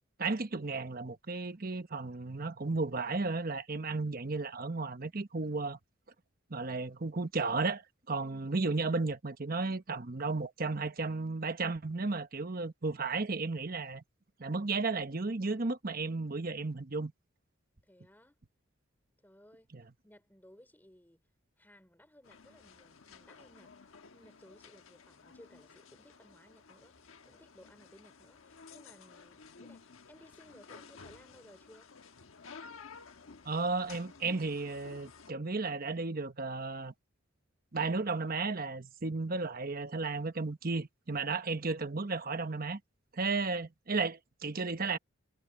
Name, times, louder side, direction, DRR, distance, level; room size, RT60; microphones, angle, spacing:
voice 1, 0.2-5.8 6.5-14.0 14.4-17.1 19.7-19.8 33.4-36.9 37.7-42.8 43.1-45.0, right 3 dB, 45° right, 1.1 m, -34 dB
voice 2, 17.8-18.4 19.2-19.7 20.0-21.2 21.6-23.8 24.1-31.9, equal, 10° left, 3.0 m, -60 dB
sound 1, 22.2-35.3, left 5 dB, 80° left, 1.2 m, -54 dB
head